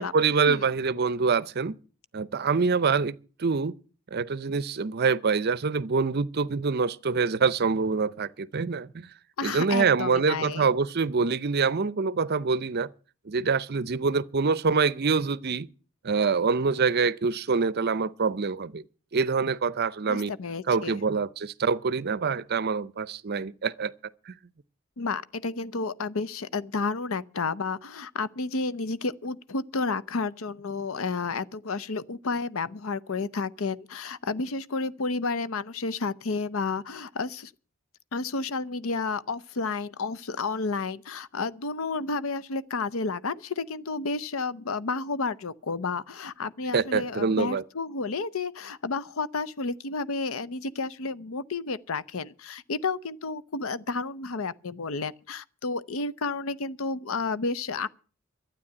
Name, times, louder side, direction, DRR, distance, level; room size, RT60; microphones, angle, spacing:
voice 1, 0.0-1.8 2.1-3.7 4.1-9.1 9.4-12.9 13.3-15.7 16.0-18.8 19.1-20.3 20.7-23.9 24.3-24.4 46.7-47.6, right 5 dB, 50° right, 0.6 m, -25 dB
voice 2, 9.4-10.7 20.1-21.0 25.0-37.5 38.1-57.9, left 4 dB, 75° left, 0.7 m, -31 dB
12.5 x 9.1 x 8.6 m
head